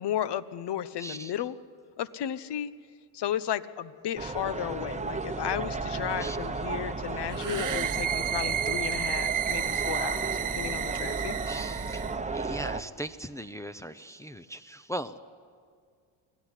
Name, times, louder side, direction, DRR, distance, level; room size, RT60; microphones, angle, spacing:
voice 1, 0.0-1.6 2.0-2.7 3.1-10.3 10.5-11.3, left 11 dB, 55° left, 15 dB, 1.0 m, -33 dB
voice 2, 1.0-1.3 6.2-6.4 11.5-15.2, right 1 dB, 5° left, 7 dB, 0.7 m, -39 dB
sound 1, 4.2-12.8, right 3 dB, 15° right, 1.0 m, -34 dB
sound 2, 7.3-12.2, right 9 dB, 40° right, 1.0 m, -31 dB
24.5 x 17.0 x 10.0 m, 2.1 s
supercardioid pair, 85°, 49 cm